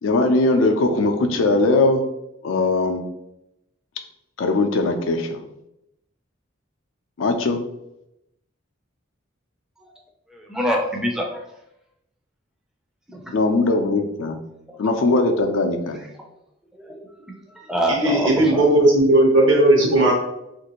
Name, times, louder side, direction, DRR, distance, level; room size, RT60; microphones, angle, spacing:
voice 1, 0.0-2.0 2.4-3.0 4.4-5.4 7.2-7.6 13.3-14.4 14.8-16.0, left 2 dB, 85° left, 5 dB, 0.4 m, -20 dB
voice 2, 10.3-11.3 13.1-13.2 16.9-17.0 17.3-18.6, equal, 5° right, 0 dB, 0.4 m, -25 dB
voice 3, 17.9-20.1, right 1 dB, 70° right, -1 dB, 1.0 m, -16 dB
3.1 x 2.5 x 2.9 m, 0.85 s
head